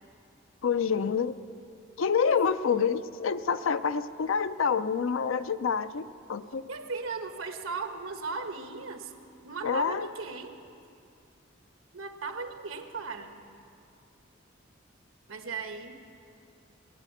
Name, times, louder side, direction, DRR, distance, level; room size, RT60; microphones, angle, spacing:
voice 1, 0.6-1.4 2.0-6.6 9.6-10.1, left 6 dB, 80° left, 13 dB, 0.5 m, -27 dB
voice 2, 6.7-9.1 9.4-10.6 11.9-13.4 15.3-15.9, right 4 dB, 85° right, 6 dB, 1.2 m, -37 dB
19.0 x 9.0 x 8.4 m, 2.5 s
head